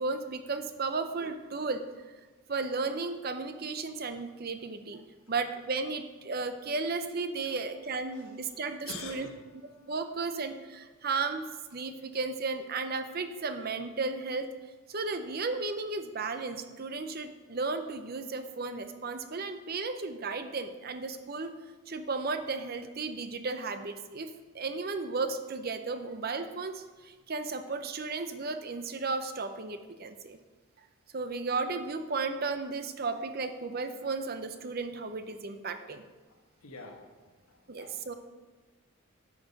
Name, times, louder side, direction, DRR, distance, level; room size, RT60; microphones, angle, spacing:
voice 1, 0.0-2.2 2.5-5.0 5.3-9.3 9.9-11.5 11.7-14.5 14.9-21.5 21.9-24.3 24.5-30.4 31.1-36.0 37.7-38.1, right 4 dB, 45° right, 9 dB, 0.6 m, -34 dB
voice 2, 8.9-9.4 9.7-9.9 36.3-38.2, left 3 dB, 85° left, 3 dB, 1.3 m, -47 dB
9.3 x 6.3 x 5.3 m, 1.3 s
head